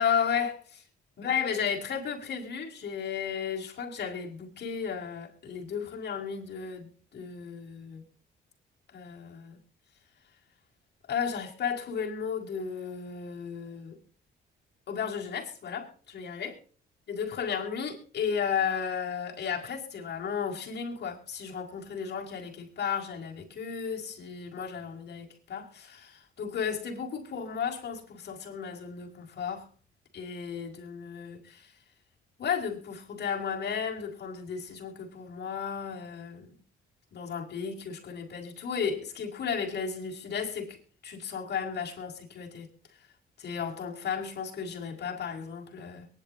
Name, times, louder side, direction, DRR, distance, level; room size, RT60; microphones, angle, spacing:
voice 1, 0.0-0.8 1.2-8.0 8.9-9.6 11.1-14.0 14.9-16.5 17.1-29.7 30.1-31.7 32.4-36.6 37.1-40.8 41.0-42.7 43.4-46.1, left 7 dB, 55° left, 5.2 m, -34 dB
23.0 x 11.0 x 2.8 m
cardioid pair, 90°, 20 cm